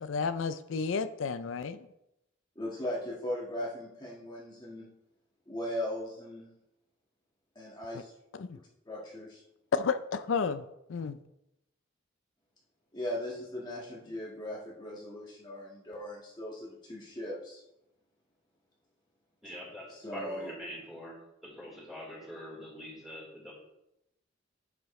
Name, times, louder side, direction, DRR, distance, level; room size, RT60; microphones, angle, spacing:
voice 1, 0.0-1.8 8.3-8.5 9.7-10.6 10.9-11.1, left 5 dB, 80° left, 11 dB, 0.4 m, -31 dB
voice 2, 2.5-4.9 5.5-6.5 7.5-8.1 8.5-9.4 12.9-17.6 19.9-20.5, left 1 dB, 25° left, -5 dB, 1.6 m, -38 dB
voice 3, 19.4-21.2 21.4-23.5, left 1 dB, ahead, -5 dB, 3.9 m, -44 dB
11.0 x 7.7 x 3.2 m, 0.86 s
head